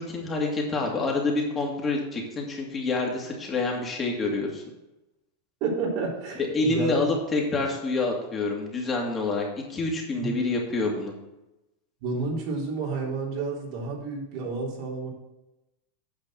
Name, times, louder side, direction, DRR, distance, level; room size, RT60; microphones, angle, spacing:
voice 1, 0.0-4.6 6.4-11.1, left 3 dB, 20° left, 0 dB, 2.5 m, -27 dB
voice 2, 5.6-7.0 10.2-10.3 12.0-15.1, right 3 dB, 55° right, -2 dB, 3.4 m, -30 dB
8.9 x 5.7 x 6.3 m, 0.96 s
supercardioid pair, 130°, 0 cm